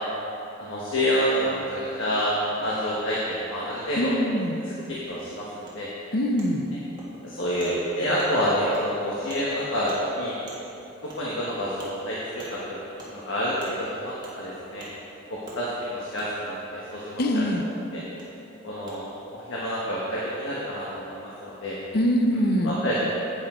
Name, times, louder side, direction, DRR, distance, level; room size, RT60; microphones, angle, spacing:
voice 1, 0.6-4.1 4.7-5.9 7.2-10.4 11.0-12.8 13.1-14.8 15.3-17.4 17.9-18.0 18.6-21.8 22.6-23.2, equal, 70° left, -6 dB, 1.3 m, -28 dB
voice 2, 4.0-4.6 6.1-6.7 17.2-17.6 21.9-22.7, equal, 50° left, 5 dB, 0.6 m, -23 dB
Wood, 5.7-5.8 6.4-6.5 7.0-7.1 7.6-7.7 8.2-8.3 8.7-8.8 9.3-9.4 9.9-10.0 10.5-10.6 11.1-11.2 11.8-11.9 12.4-12.5 13.0-13.1 13.6-13.7 14.2-14.4 14.8-14.9 15.5-15.6 16.2-16.3 17.3-17.4 18.2-18.3 18.9-19.0, right 2 dB, 20° right, 1.6 m, -45 dB
9.1 x 8.6 x 3.7 m, 2.9 s
head